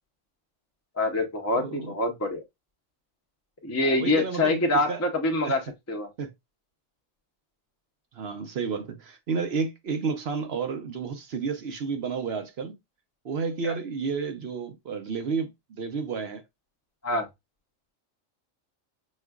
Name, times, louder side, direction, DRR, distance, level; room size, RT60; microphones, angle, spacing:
voice 1, 1.0-2.4 3.6-6.1 13.6-13.7 17.0-17.3, left 2 dB, 15° left, 0.7 m, -25 dB
voice 2, 1.6-1.9 3.8-5.0 5.4-5.6 6.2-6.3 8.1-12.7 13.2-16.4, right 5 dB, 55° right, 0.9 m, -31 dB
6.3 x 2.4 x 2.3 m
omnidirectional pair, 1.4 m